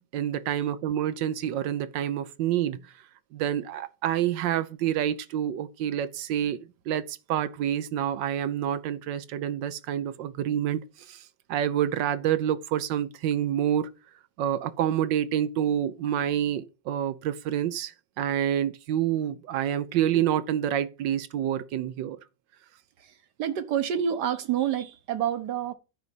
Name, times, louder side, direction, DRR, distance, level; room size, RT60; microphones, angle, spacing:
voice 1, 0.0-2.8 3.3-10.8 11.1-11.2 11.5-13.9 14.4-22.2, right 10 dB, 85° right, 1.4 m, -28 dB
voice 2, 23.0-25.7, right 9 dB, 70° right, 1.5 m, -28 dB
9.7 x 4.0 x 7.1 m
omnidirectional pair, 1.9 m